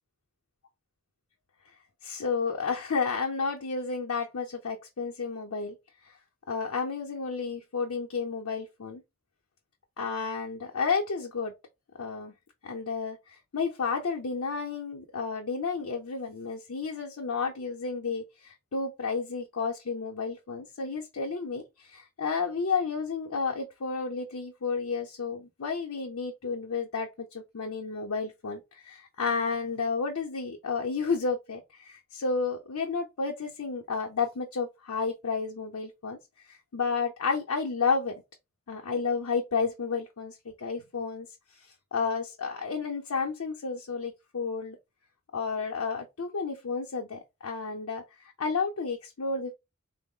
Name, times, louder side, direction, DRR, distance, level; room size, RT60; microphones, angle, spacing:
voice 1, 2.0-5.7 6.5-9.0 10.0-11.5 12.0-12.3 12.6-13.2 13.5-36.2 36.7-38.1 38.7-41.3 41.9-44.8 45.3-49.5, left 4 dB, 85° left, 0.6 m, -31 dB
3.8 x 2.1 x 3.6 m
head